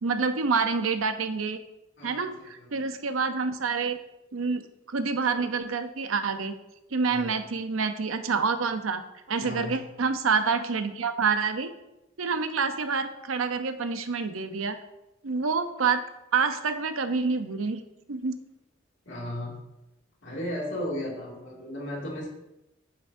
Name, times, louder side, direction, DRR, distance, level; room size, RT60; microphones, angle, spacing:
voice 1, 0.0-1.6 2.0-4.0 4.3-6.5 6.9-9.0 9.3-11.7 12.2-14.8 15.2-16.0 16.3-17.8 18.1-18.4, right 5 dB, 90° right, 9 dB, 0.7 m, -27 dB
voice 2, 2.0-2.7 7.1-7.3 9.4-9.8 19.1-19.6 20.2-22.3, left 1 dB, 65° left, -3 dB, 2.4 m, -35 dB
8.9 x 8.3 x 2.7 m, 0.91 s
head